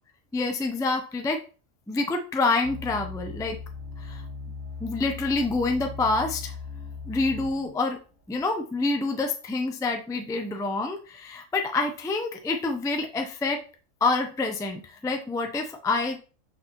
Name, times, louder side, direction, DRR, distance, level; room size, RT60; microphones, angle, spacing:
voice 1, 0.3-1.4 1.9-3.6 4.0-4.2 4.8-6.6 7.1-8.0 8.3-13.6 14.0-16.2, left 3 dB, 5° left, 5 dB, 0.3 m, -27 dB
sound 1, 2.6-7.8 8.4-8.5, left 4 dB, 85° right, 2.6 m, -38 dB
5.9 x 5.4 x 3.0 m, 0.36 s
omnidirectional pair, 1.3 m